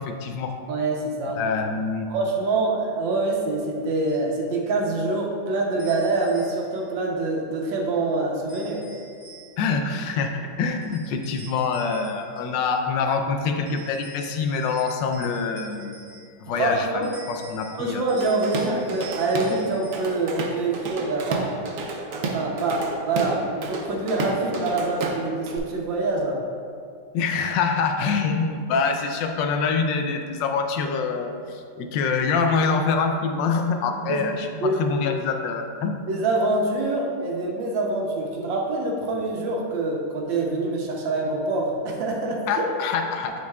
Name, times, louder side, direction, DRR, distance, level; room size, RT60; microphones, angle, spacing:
voice 1, 0.0-0.6 1.3-2.1 9.6-16.0 16.4-18.0 27.1-34.5 34.7-36.2 42.5-43.3, left 5 dB, 80° left, 4 dB, 1.3 m, -25 dB
voice 2, 0.7-1.4 2.1-8.8 16.5-17.1 17.7-21.5 22.1-26.4 34.1-34.2 34.5-34.8 36.1-42.7, right 2 dB, 90° right, 0 dB, 1.6 m, -25 dB
sound 1, 4.1-4.3 5.8-6.9 8.5-9.7 10.8-12.6 13.7-16.5 17.0-20.1, right 2 dB, 10° right, 0.7 m, -47 dB
Drum kit / Drum, 18.2-19.6 19.9-25.6, right 3 dB, 65° right, 0.8 m, -31 dB
9.5 x 4.5 x 2.3 m, 2.2 s
omnidirectional pair, 2.0 m